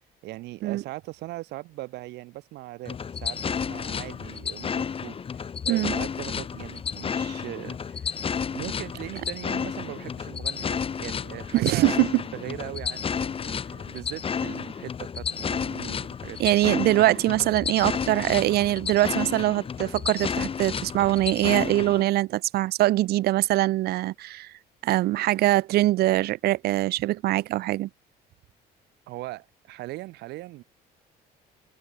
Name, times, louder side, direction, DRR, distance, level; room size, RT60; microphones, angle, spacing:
voice 1, 0.2-8.2 8.5-16.4 29.1-30.6, right 18 dB, 85° right, 2.0 m, -40 dB
sound 1, 2.9-22.0, left 6 dB, 35° left, 1.4 m, -31 dB
voice 2, 11.5-12.2 16.4-24.5 24.8-27.9, right 16 dB, 70° right, 0.6 m, -23 dB
cardioid pair, 110°, 17 cm